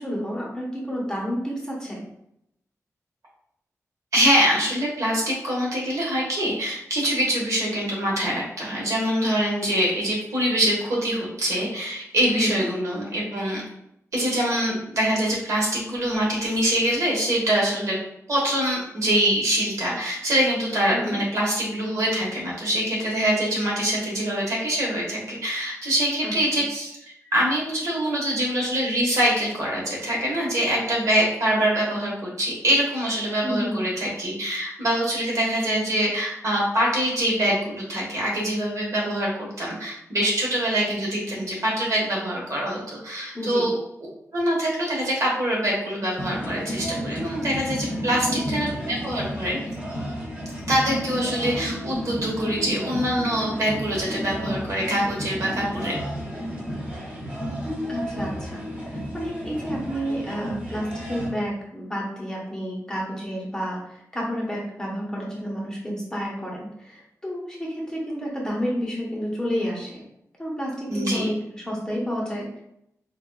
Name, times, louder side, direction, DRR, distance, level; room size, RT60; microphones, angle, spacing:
voice 1, 0.0-2.0 12.3-12.6 20.9-21.2 26.2-26.3 33.4-33.8 43.3-43.7 48.3-48.6 57.9-70.0 70.4-72.6, equal, 10° left, -4 dB, 0.9 m, -30 dB
voice 2, 4.1-13.6 14.1-18.0 18.3-27.0 27.3-43.8 44.3-49.6 50.7-56.0 70.9-71.3, equal, 70° right, -3 dB, 1.3 m, -24 dB
sound 1, 46.2-61.3, equal, 20° right, 0.9 m, -32 dB
4.6 x 2.4 x 2.3 m, 0.78 s
wide cardioid pair, 125°, 6 cm